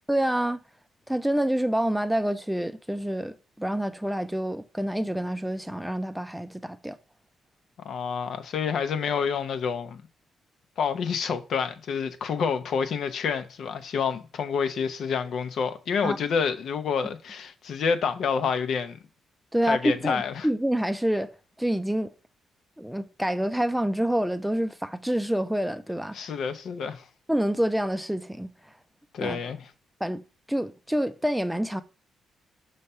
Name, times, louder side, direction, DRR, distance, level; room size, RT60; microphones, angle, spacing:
voice 1, 0.1-0.6 1.1-7.0 16.0-16.2 19.5-21.3 21.6-22.1 22.8-26.3 27.3-28.5 29.2-29.4 30.0-30.2 30.5-31.8, right 1 dB, 5° right, 0.5 m, -27 dB
voice 2, 7.8-10.0 10.8-19.0 19.6-20.5 26.1-27.1 29.1-29.7, left 6 dB, 70° left, 0.7 m, -28 dB
5.6 x 3.2 x 5.5 m
cardioid pair, 80°, 0 cm